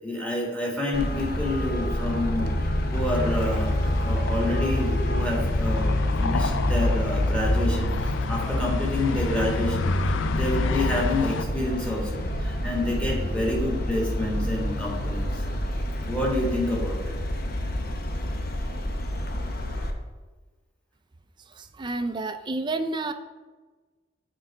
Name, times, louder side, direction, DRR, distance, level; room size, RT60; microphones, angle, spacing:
voice 1, 0.0-5.9 6.2-15.4 16.1-17.1, left 1 dB, 5° left, -3 dB, 1.7 m, -28 dB
Traffic noise roadway noise, 0.9-19.9, left 1 dB, 50° left, 0.8 m, -27 dB
sound 1, 2.9-11.4, left 5 dB, 80° left, 0.4 m, -33 dB
voice 2, 21.5-23.1, right 2 dB, 25° right, 9 dB, 0.4 m, -30 dB
8.9 x 4.0 x 4.6 m, 1.3 s
head